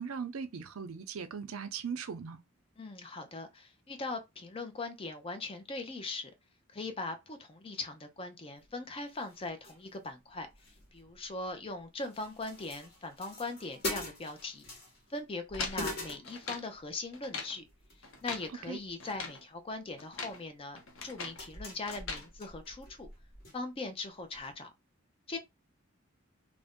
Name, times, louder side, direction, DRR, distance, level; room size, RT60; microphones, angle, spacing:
voice 1, 0.0-2.4 18.5-18.8, right 6 dB, 85° right, 0.5 m, -39 dB
voice 2, 2.8-6.3 6.7-10.5 10.9-14.6 15.1-17.6 18.2-23.1 23.5-24.7 25.3-25.4, left 3 dB, 25° left, 0.5 m, -40 dB
sound 1, 8.6-8.7 9.1-10.1 10.4-11.7 12.0-15.2 15.5-16.9 17.7-18.5 18.8-19.3 20.3-20.4 21.0-23.5 23.8-23.9 24.4-24.5, left 1 dB, 50° left, 1.1 m, -44 dB
sound 2, 15.5-16.7 17.1-17.6 18.0-18.5 19.0-19.4 20.0-20.4 20.7-21.4 21.9-22.3, left 4 dB, 70° left, 0.7 m, -41 dB
2.5 x 2.1 x 3.5 m
head